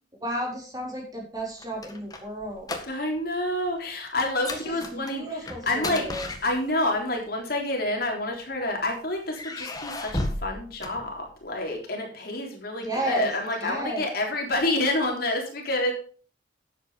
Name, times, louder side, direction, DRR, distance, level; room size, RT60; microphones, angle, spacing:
voice 1, 0.2-2.8 4.5-6.3 12.8-13.3 13.6-14.0, right 1 dB, 20° right, -1 dB, 4.1 m, -33 dB
sound 1, 1.4-3.3 3.5-3.8 4.2-7.0 7.9-8.7 9.3-11.6, left 2 dB, 20° left, 1.6 m, -35 dB
voice 2, 2.9-5.3 5.7-6.1 6.4-15.9, left 1 dB, 55° left, 1 dB, 3.7 m, -28 dB
11.5 x 8.1 x 5.0 m, 0.41 s
head